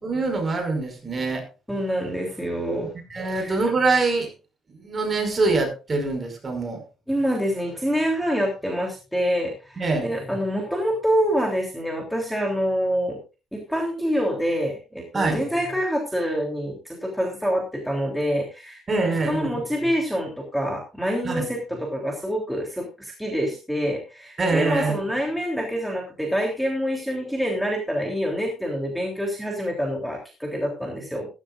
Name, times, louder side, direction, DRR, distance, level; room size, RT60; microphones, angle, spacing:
voice 1, 0.0-1.5 3.1-4.3 4.7-6.8 9.8-10.1 15.1-15.4 18.9-19.6 21.2-21.5 24.4-25.0, right 3 dB, 25° right, 4 dB, 5.2 m, -24 dB
voice 2, 1.7-2.9 3.3-3.6 7.1-13.2 13.5-31.3, equal, ahead, -1 dB, 3.2 m, -26 dB
15.0 x 14.5 x 2.5 m, 0.30 s
cardioid pair, 145°, 0 cm